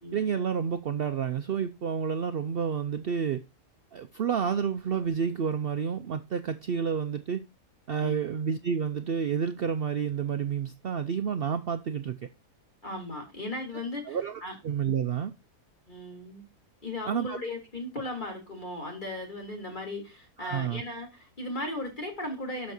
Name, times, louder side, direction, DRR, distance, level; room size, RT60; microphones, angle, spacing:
voice 1, 0.1-3.4 3.9-7.4 7.9-12.2 14.1-15.3 17.1-17.4 20.4-20.8, right 7 dB, 70° right, 0.5 m, -30 dB
voice 2, 12.8-14.5 15.9-16.4 16.8-22.7, left 1 dB, 30° left, 3.2 m, -37 dB
12.5 x 5.3 x 2.7 m
omnidirectional pair, 1.7 m